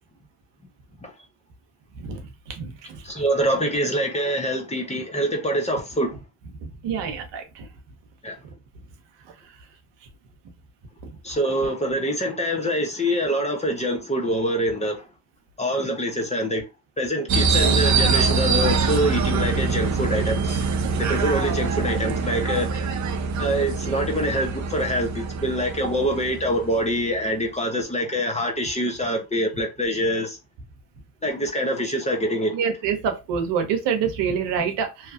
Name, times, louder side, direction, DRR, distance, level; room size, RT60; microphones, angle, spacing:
voice 1, 2.5-3.0 6.6-7.7 32.5-35.1, right 7 dB, 70° right, 0.9 m, -26 dB
voice 2, 3.0-6.1 8.2-8.3 11.2-15.0 15.6-16.6 17.0-20.6 21.0-22.7 23.4-30.4 31.2-32.5, equal, 15° left, 0.9 m, -25 dB
sound 1, 17.3-27.2, right 4 dB, 40° right, 0.7 m, -24 dB
2.8 x 2.3 x 2.4 m
hypercardioid pair, 55°, 46 cm